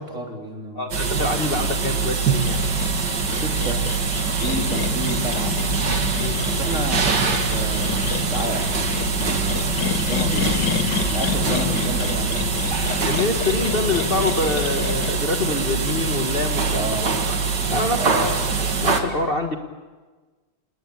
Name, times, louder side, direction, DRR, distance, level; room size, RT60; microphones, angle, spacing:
voice 1, 0.0-0.9 3.3-3.9 4.3-5.6 6.4-8.7 9.1-10.5 11.0-12.8 16.7-17.2 18.0-18.3, right 2 dB, 40° right, 0 dB, 4.3 m, -31 dB
voice 2, 0.7-2.6 6.2-6.4 13.0-17.4 17.7-18.4 18.8-19.6, left 3 dB, 30° left, 3 dB, 1.5 m, -25 dB
sound 1, 0.9-19.0, right 5 dB, 60° right, 2.7 m, -24 dB
sound 2, 2.4-15.1, left 7 dB, 65° left, 2.1 m, -29 dB
28.0 x 19.5 x 8.7 m, 1.3 s
omnidirectional pair, 2.1 m